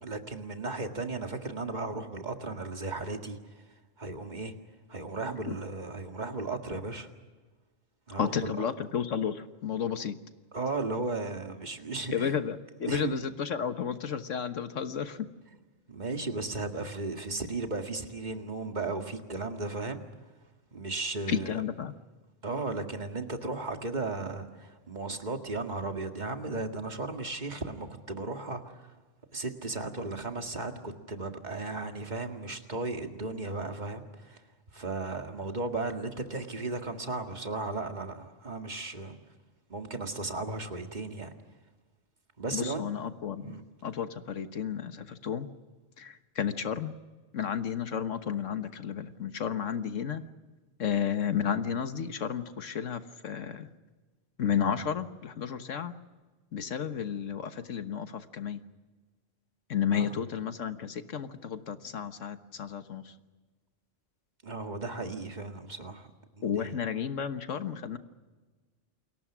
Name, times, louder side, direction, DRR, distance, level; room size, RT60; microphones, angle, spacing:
voice 1, 0.0-3.5 4.0-4.5 4.9-7.1 8.1-8.7 10.5-12.4 12.8-13.3 15.5-15.6 15.9-20.0 20.7-21.6 22.4-28.9 29.3-34.4 34.7-39.2 39.7-41.3 42.4-42.8 43.4-43.6 59.9-60.2 64.4-66.8, right 3 dB, 35° right, 5 dB, 2.1 m, -35 dB
voice 2, 8.2-10.1 12.1-15.2 21.3-21.9 42.5-43.5 43.8-45.5 46.0-46.9 47.3-50.2 50.8-53.7 54.4-55.9 56.5-58.6 59.7-63.0 66.4-68.0, left 7 dB, 90° left, 9 dB, 1.6 m, -32 dB
29.0 x 22.0 x 6.1 m, 1.3 s
omnidirectional pair, 1.3 m